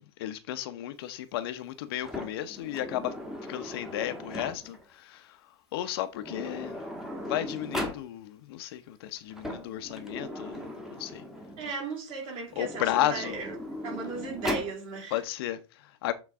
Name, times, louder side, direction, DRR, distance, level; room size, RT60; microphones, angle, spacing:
voice 1, 0.0-3.1 3.5-5.4 5.7-6.8 7.2-11.2 12.6-13.4 15.1-16.1, left 13 dB, 50° left, 0.8 m, -33 dB
Sliding door, 2.0-4.8 5.8-5.9 6.2-8.0 9.2-11.7 12.5-14.8, left 1 dB, ahead, 1.3 m, -38 dB
voice 2, 11.6-13.5 13.8-15.2, right 4 dB, 35° right, 3.3 m, -36 dB
8.2 x 3.9 x 3.6 m
hypercardioid pair, 145°, 15 cm